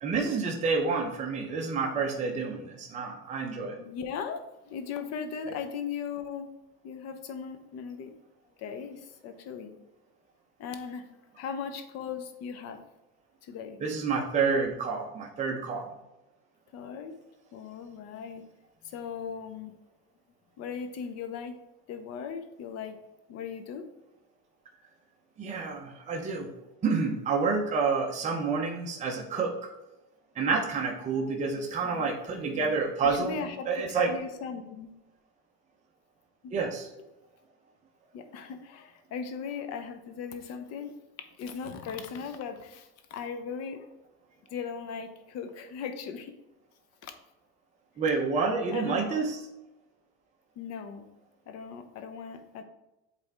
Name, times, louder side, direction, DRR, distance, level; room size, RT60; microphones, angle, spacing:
voice 1, 0.0-3.8 5.5-5.6 13.8-15.9 25.4-26.5 26.8-29.5 30.3-34.1 36.5-36.9 48.0-49.4, right 4 dB, 20° right, 0 dB, 0.8 m, -29 dB
voice 2, 3.8-6.5 6.8-8.1 8.6-9.7 10.6-11.0 11.4-12.8 13.4-13.8 16.7-17.2 17.5-18.4 18.8-19.7 20.6-21.6 21.9-23.0 23.3-23.9 31.5-32.2 33.0-34.9 36.4-36.5 38.1-40.9 41.4-43.9 44.5-46.3 47.0-47.1 48.7-49.3 50.6-51.1 51.5-52.6, left 6 dB, 50° left, 7 dB, 0.8 m, -38 dB
8.3 x 3.5 x 3.4 m, 0.97 s
cardioid pair, 140°, 34 cm